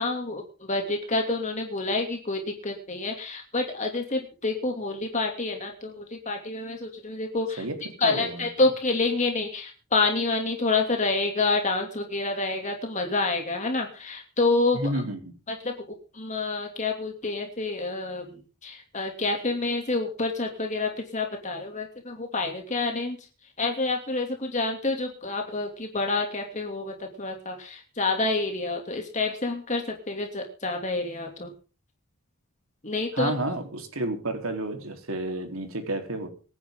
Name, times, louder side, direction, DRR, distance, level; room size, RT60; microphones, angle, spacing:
voice 1, 0.0-7.6 8.0-14.8 15.5-15.8 16.1-23.2 23.6-31.5 32.8-33.3, left 3 dB, 35° left, 2 dB, 2.9 m, -28 dB
voice 2, 8.0-8.5 14.7-15.3 33.1-36.3, right 1 dB, 75° right, 5 dB, 4.0 m, -30 dB
25.0 x 10.0 x 3.9 m, 0.37 s
head